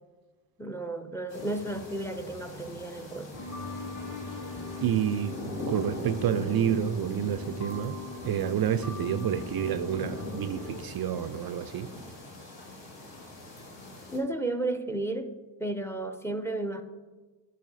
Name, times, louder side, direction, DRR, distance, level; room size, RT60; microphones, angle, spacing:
voice 1, 0.6-3.3 14.1-15.3 15.6-16.8, right 2 dB, 5° left, 8 dB, 0.7 m, -33 dB
sound 1, 1.3-14.2, left 2 dB, 55° left, 2.2 m, -42 dB
sound 2, 3.3-10.8, left 2 dB, 40° left, 2.1 m, -40 dB
voice 2, 4.8-5.4 5.7-8.0 8.2-11.9, right 9 dB, 50° right, 10 dB, 0.5 m, -29 dB
9.1 x 4.8 x 4.1 m, 1.3 s
supercardioid pair, 50°, 50 cm